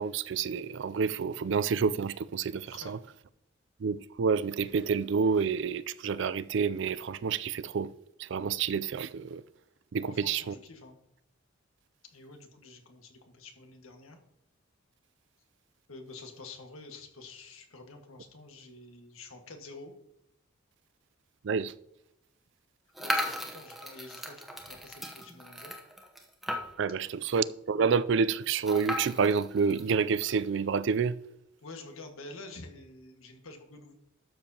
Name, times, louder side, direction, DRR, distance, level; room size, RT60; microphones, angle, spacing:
voice 1, 0.0-3.0 3.8-7.9 8.2-9.4 9.9-10.5 21.4-21.7 26.8-31.1, right 5 dB, 60° right, 0.4 m, -28 dB
voice 2, 10.0-11.0 12.1-14.2 15.9-19.9 23.0-25.7 27.2-27.3 31.6-33.9, left 3 dB, 90° left, 1.6 m, -48 dB
sound 1, 22.9-27.0 27.4-27.5 27.7-27.8 28.6-30.4, equal, ahead, 0.9 m, -36 dB
12.0 x 7.0 x 2.8 m
head